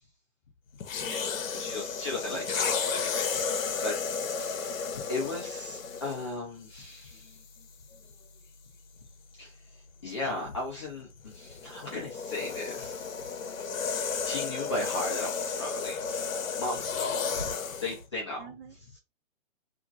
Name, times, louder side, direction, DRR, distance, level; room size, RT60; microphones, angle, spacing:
sound 1, 0.8-6.3 7.1-7.4 11.3-18.0, left 5 dB, 85° left, 0.7 m, -33 dB
voice 1, 1.0-1.9 18.4-18.8, right 8 dB, 45° right, 0.6 m, -48 dB
voice 2, 1.5-4.0 4.4-7.4 9.4-9.5 10.0-13.0 14.2-16.2 16.6-17.3 17.8-18.5 18.9-19.0, left 2 dB, 25° left, 0.4 m, -36 dB
2.9 x 2.5 x 2.4 m
hypercardioid pair, 155°, 39 cm